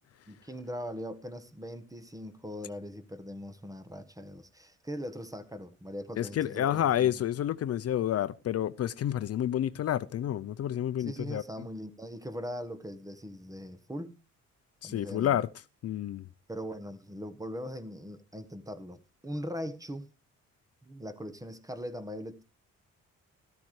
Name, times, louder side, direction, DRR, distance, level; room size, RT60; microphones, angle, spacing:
voice 1, 0.3-7.2 11.0-14.2 14.8-15.4 16.5-20.1 20.8-22.4, equal, 10° right, 1.2 m, -40 dB
voice 2, 6.2-11.4 14.8-15.5 15.8-16.2, left 11 dB, 55° left, 0.6 m, -29 dB
13.5 x 13.0 x 3.2 m
cardioid pair, 90°, 30 cm